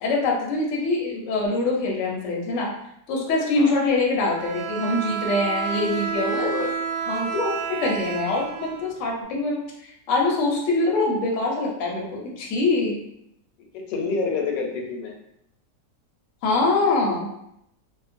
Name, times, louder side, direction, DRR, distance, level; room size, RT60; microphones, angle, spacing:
voice 1, 0.0-2.7 3.1-6.5 7.1-13.0 16.4-17.3, left 2 dB, 60° left, -2 dB, 0.8 m, -24 dB
Bowed string instrument, 4.2-9.2, right 6 dB, 85° right, 1.2 m, -30 dB
voice 2, 6.1-6.7 13.7-15.1, left 4 dB, 85° left, 1 dB, 1.2 m, -28 dB
2.8 x 2.0 x 2.5 m, 0.77 s
omnidirectional pair, 1.8 m